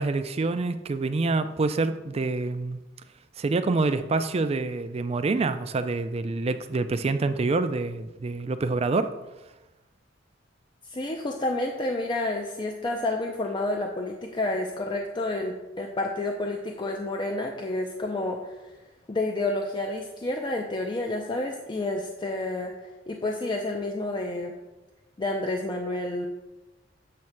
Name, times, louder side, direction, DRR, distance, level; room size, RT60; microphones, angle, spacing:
voice 1, 0.0-2.8 3.4-9.1, right 3 dB, 35° right, 10 dB, 0.4 m, -26 dB
voice 2, 10.9-18.8 19.1-24.5 25.2-26.3, left 2 dB, 25° left, 2 dB, 0.5 m, -30 dB
7.5 x 3.2 x 5.8 m, 1.1 s
head